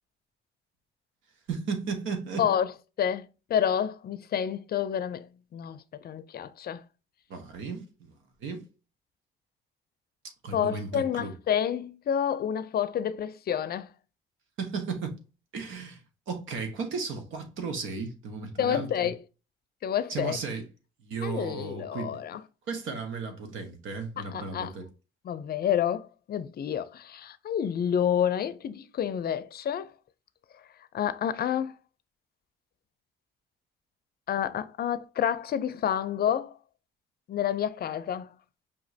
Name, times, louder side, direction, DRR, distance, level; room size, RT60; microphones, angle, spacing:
voice 1, 1.5-2.5 7.3-8.1 8.4-8.6 10.4-11.3 14.6-15.2 15.5-16.0 16.3-19.1 20.1-20.6 21.0-22.2 22.7-24.9, right 4 dB, 85° right, 1.2 m, -35 dB
voice 2, 2.4-2.7 3.0-6.8 10.5-13.9 18.6-19.2 19.8-20.4 21.2-22.4 24.2-24.7 25.2-29.9 30.9-31.7 34.3-36.5 37.3-38.3, left 9 dB, 50° left, 0.5 m, -29 dB
5.4 x 2.9 x 2.7 m
cardioid pair, 90°, 20 cm